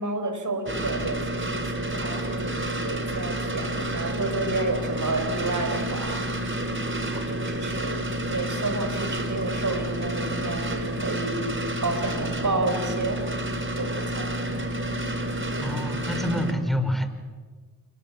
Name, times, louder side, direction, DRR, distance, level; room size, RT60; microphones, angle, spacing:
voice 1, 0.0-6.1 7.3-11.5 11.8-13.2 13.8-14.3, right 2 dB, 50° right, 7 dB, 5.9 m, -30 dB
sound 1, 0.7-16.5, right 1 dB, 30° right, 4.0 m, -29 dB
voice 2, 15.6-17.1, equal, ahead, 7 dB, 5.2 m, -27 dB
28.5 x 22.0 x 7.5 m, 1.4 s
cardioid pair, 50°, 38 cm